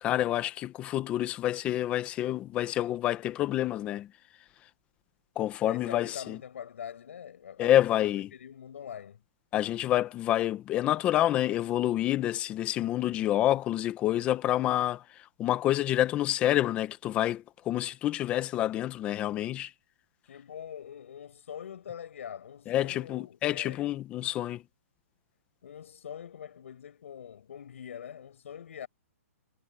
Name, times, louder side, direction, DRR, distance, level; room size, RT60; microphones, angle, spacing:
voice 1, 0.0-4.1 5.4-6.4 7.6-8.3 9.5-19.7 22.7-24.6, left 13 dB, 15° left, 1.0 m, -28 dB
voice 2, 5.6-9.2 20.2-23.8 25.6-28.9, left 8 dB, 60° left, 7.1 m, -43 dB
hypercardioid pair, 170°, 8 cm